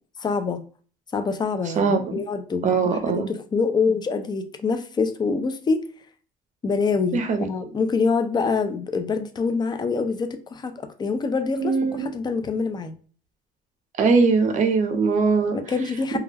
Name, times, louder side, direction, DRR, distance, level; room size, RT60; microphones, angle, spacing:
voice 1, 0.2-0.6 1.1-5.8 6.6-12.9 15.5-16.2, left 4 dB, 25° left, 0.4 m, -25 dB
voice 2, 1.8-2.2 2.6-3.3 7.1-7.7 11.6-12.1 14.0-15.6, right 4 dB, 45° right, 0.6 m, -21 dB
2.3 x 2.1 x 3.2 m
cardioid pair, 110°, 17 cm